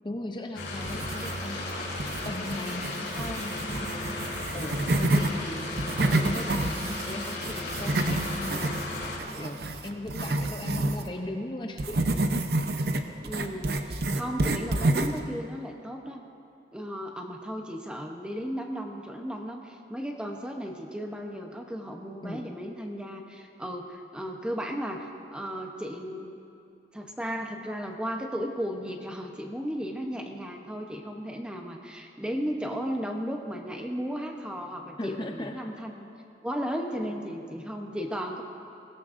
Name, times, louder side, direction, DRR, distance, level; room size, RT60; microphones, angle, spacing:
voice 1, 0.0-12.1 22.2-22.5 35.0-35.6, left 1 dB, 25° left, 2 dB, 0.6 m, -38 dB
sound 1, 0.5-9.2, left 2 dB, 85° left, 3.8 m, -35 dB
sound 2, 0.8-1.6 2.0-5.3 5.7-11.1 11.8-15.3, right 2 dB, 60° right, 0.7 m, -29 dB
voice 2, 13.2-16.2 16.7-26.4 26.9-36.1 36.4-38.4, equal, 5° right, 2 dB, 0.8 m, -35 dB
21.5 x 17.0 x 2.6 m, 2.6 s
head